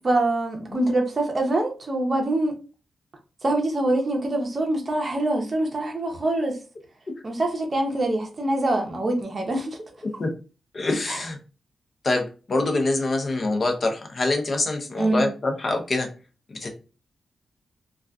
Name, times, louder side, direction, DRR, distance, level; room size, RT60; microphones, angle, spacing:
voice 1, 0.0-2.6 3.4-6.6 7.2-9.8 11.1-11.2 15.0-15.3, right 2 dB, 35° right, 0.7 m, -24 dB
voice 2, 10.7-11.4 12.0-16.1 16.5-16.7, left 2 dB, 45° left, 0.6 m, -25 dB
2.4 x 2.3 x 2.3 m
cardioid pair, 100°, 0 cm